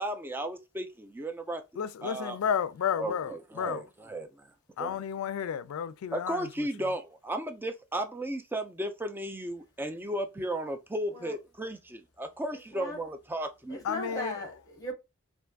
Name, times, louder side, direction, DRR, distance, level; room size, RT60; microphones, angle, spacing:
voice 1, 0.0-1.6 2.0-2.4 3.0-3.8 4.1-4.5 4.8-4.9 6.1-13.8 14.1-14.2, right 1 dB, 10° right, 0.4 m, -35 dB
voice 2, 1.8-3.9 4.8-6.9 13.8-14.4, left 8 dB, 90° left, 0.3 m, -32 dB
voice 3, 13.7-14.9, left 1 dB, 15° left, 1.2 m, -38 dB
3.4 x 2.6 x 2.3 m
head